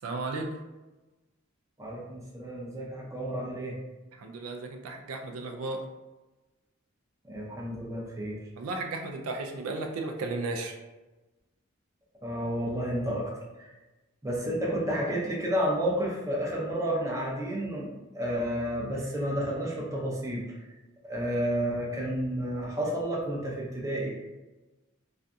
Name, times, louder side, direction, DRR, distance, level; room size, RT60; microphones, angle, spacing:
voice 1, 0.0-0.5 4.2-5.8 8.6-10.8, right 3 dB, 85° right, 3 dB, 0.4 m, -34 dB
voice 2, 1.8-3.8 7.3-8.4 12.2-13.3 13.6-13.7 14.2-20.4 21.0-24.1, equal, 15° right, -4 dB, 0.5 m, -31 dB
2.6 x 2.5 x 2.2 m, 1.1 s
head